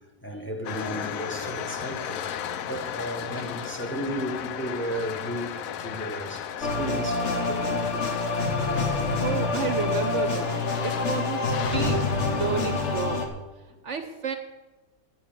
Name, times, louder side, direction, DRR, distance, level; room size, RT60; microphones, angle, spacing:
voice 1, 0.2-7.9 8.9-9.2 13.7-13.8, equal, 10° left, 1.2 m, -34 dB
sound 1, 0.6-13.0, left 9 dB, 70° left, 1.0 m, -36 dB
sound 2, 6.6-13.3, left 3 dB, 50° left, 1.8 m, -27 dB
voice 2, 9.2-13.3 13.8-14.3, right 6 dB, 60° right, 1.0 m, -31 dB
11.0 x 6.1 x 8.9 m
omnidirectional pair, 1.6 m